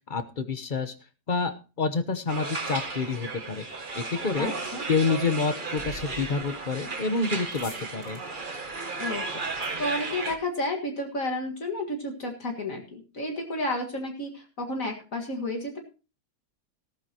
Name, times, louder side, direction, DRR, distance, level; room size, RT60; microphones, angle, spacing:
voice 1, 0.1-0.9 1.3-3.6 3.9-4.5 4.9-8.2, left 4 dB, 35° left, 11 dB, 1.0 m, -28 dB
sound 1, 2.3-10.4, right 3 dB, 30° right, 1.5 m, -34 dB
voice 2, 4.4-4.9 9.0-9.2 9.5-15.9, left 1 dB, 55° left, 2 dB, 2.2 m, -32 dB
sound 2, 7.5-10.8, left 3 dB, 90° left, 3.3 m, -51 dB
14.5 x 13.5 x 2.9 m, 0.33 s
omnidirectional pair, 1.7 m